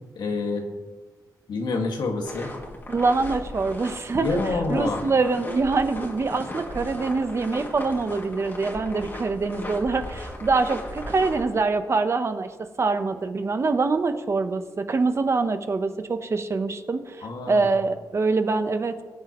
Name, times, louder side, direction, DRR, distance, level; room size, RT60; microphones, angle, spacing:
voice 1, 0.2-0.6 1.5-2.5 4.2-5.0 17.2-17.7, left 3 dB, 80° left, 2 dB, 1.9 m, -27 dB
sound 1, 2.2-11.4, left 1 dB, 30° left, 2.3 m, -37 dB
voice 2, 2.9-19.0, right 3 dB, 40° right, 9 dB, 0.9 m, -25 dB
22.0 x 9.2 x 3.0 m, 1.3 s
wide cardioid pair, 125°, 7 cm